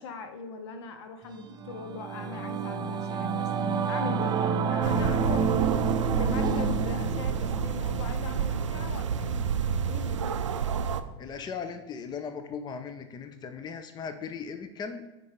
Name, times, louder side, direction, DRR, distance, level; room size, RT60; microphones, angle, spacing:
voice 1, 0.0-5.6 6.1-9.5 9.9-10.4, left 4 dB, 70° left, 8 dB, 0.8 m, -40 dB
Singing / Musical instrument, 1.4-11.1, right 5 dB, 25° right, 0.5 m, -30 dB
sound 1, 4.8-11.0, right 7 dB, 90° right, 0.4 m, -30 dB
voice 2, 11.2-15.1, left 6 dB, 30° left, 8 dB, 0.6 m, -38 dB
7.8 x 3.3 x 5.0 m, 1.0 s
hypercardioid pair, 85°, 15 cm